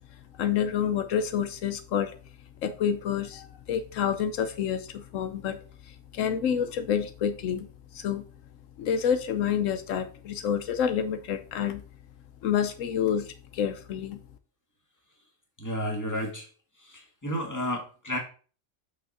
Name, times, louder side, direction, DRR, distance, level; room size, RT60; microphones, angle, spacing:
voice 1, 0.4-2.1 2.6-5.6 5.9-7.7 7.9-8.2 8.8-11.8 12.4-14.2, left 8 dB, 90° left, 1.1 m, -28 dB
voice 2, 15.6-16.5 16.8-18.2, equal, 15° left, 1.8 m, -32 dB
6.0 x 5.5 x 4.2 m
omnidirectional pair, 1.3 m